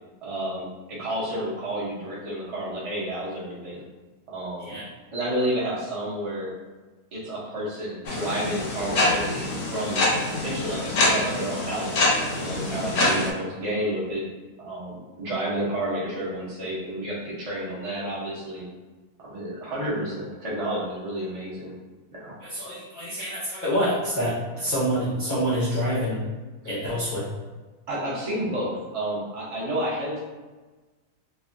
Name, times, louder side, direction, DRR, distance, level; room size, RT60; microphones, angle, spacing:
voice 1, 0.2-3.8 4.3-4.8 5.1-6.5 7.1-12.0 12.3-14.3 14.6-18.6 19.2-21.7 22.1-22.3 27.9-30.2, right 1 dB, 55° right, -6 dB, 0.4 m, -30 dB
sound 1, 8.1-13.3, left 2 dB, 60° left, 0.9 m, -25 dB
voice 2, 22.4-26.2 26.7-27.3, equal, 80° left, -10 dB, 0.4 m, -27 dB
3.2 x 2.1 x 2.5 m, 1.3 s
omnidirectional pair, 1.7 m